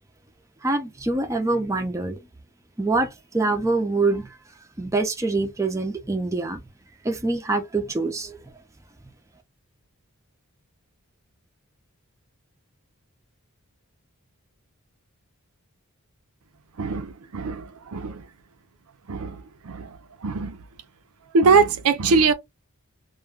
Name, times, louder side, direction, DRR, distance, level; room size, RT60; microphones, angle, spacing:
voice 1, 0.6-2.2 2.8-4.3 4.8-6.6 7.0-8.4, right 3 dB, 15° right, 0.5 m, -25 dB
voice 2, 16.8-17.6 17.9-18.2 19.1-19.4 19.7-19.9 20.2-20.6 21.3-22.3, right 4 dB, 80° right, 0.5 m, -21 dB
2.2 x 2.2 x 3.3 m
head